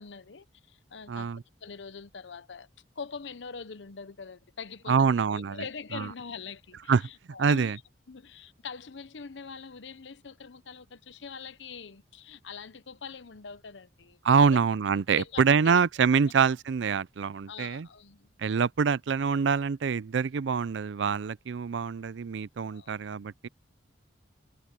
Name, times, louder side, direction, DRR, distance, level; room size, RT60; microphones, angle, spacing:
voice 1, 0.0-1.3 1.6-2.7 3.0-7.8 8.1-14.6 15.1-15.8 17.5-18.3 22.7-22.9, left 5 dB, 70° left, 0.8 m, -43 dB
voice 2, 1.1-1.4 4.9-5.6 5.9-6.1 6.9-7.0 7.4-7.8 14.2-17.9 18.4-23.5, right 6 dB, 70° right, 0.4 m, -25 dB
open air
head